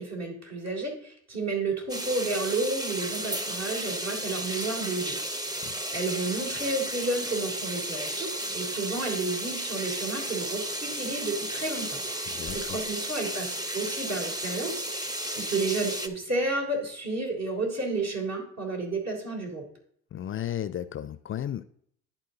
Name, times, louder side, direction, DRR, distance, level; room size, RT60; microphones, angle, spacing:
voice 1, 0.0-19.6, right 3 dB, 55° right, 3.5 m, -32 dB
sound 1, 1.9-16.1, right 1 dB, 10° right, 0.9 m, -33 dB
voice 2, 12.3-12.8 20.1-21.6, left 10 dB, 40° left, 0.4 m, -34 dB
10.5 x 4.4 x 3.9 m
supercardioid pair, 70°, 32 cm